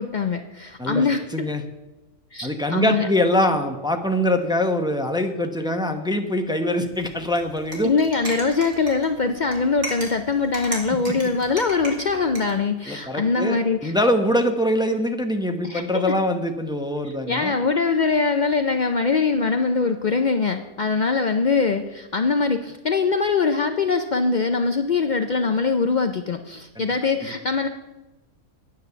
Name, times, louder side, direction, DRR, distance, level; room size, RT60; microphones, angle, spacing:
voice 1, 0.0-1.5 2.3-3.1 7.8-13.9 15.6-16.2 17.0-27.7, left 4 dB, 80° left, 6 dB, 0.4 m, -23 dB
voice 2, 2.4-7.9 10.9-11.1 12.9-17.5 26.8-26.9, left 1 dB, 5° right, 4 dB, 0.7 m, -23 dB
sound 1, 6.9-12.5, equal, 35° right, 2.7 m, -37 dB
9.6 x 9.6 x 6.9 m, 1.1 s
omnidirectional pair, 1.6 m